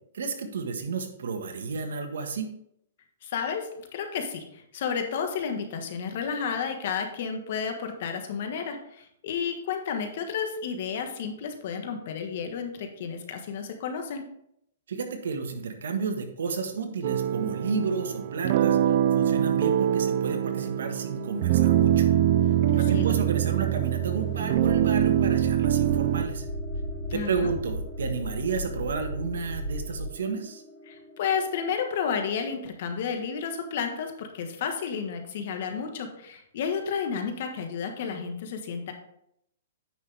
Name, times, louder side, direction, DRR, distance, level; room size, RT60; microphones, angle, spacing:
voice 1, 0.1-2.5 14.9-22.1 22.5-26.5 27.1-30.6, right 5 dB, 80° right, 5 dB, 1.4 m, -32 dB
voice 2, 3.2-14.3 22.7-23.1 27.1-27.5 30.9-38.9, left 6 dB, 50° left, 5 dB, 1.4 m, -32 dB
sound 1, 17.0-26.2, right 11 dB, 45° right, 0.4 m, -24 dB
sound 2, 20.0-31.9, left 1 dB, 35° left, 1.7 m, -43 dB
sound 3, 24.5-30.1, equal, 5° right, 3.0 m, -35 dB
9.2 x 5.9 x 3.4 m, 0.75 s
hypercardioid pair, 160°, 0 cm